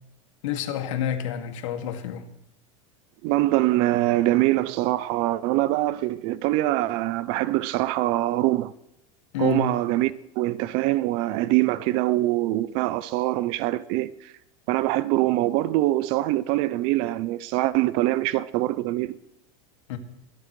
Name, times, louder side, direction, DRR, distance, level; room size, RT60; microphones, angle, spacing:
voice 1, 0.4-2.2 9.3-9.7 19.9-20.0, left 9 dB, 70° left, 2.1 m, -28 dB
voice 2, 3.2-8.7 9.4-14.3 14.7-19.1, right 16 dB, 35° right, 0.4 m, -24 dB
24.5 x 12.5 x 3.2 m
supercardioid pair, 180°, 17 cm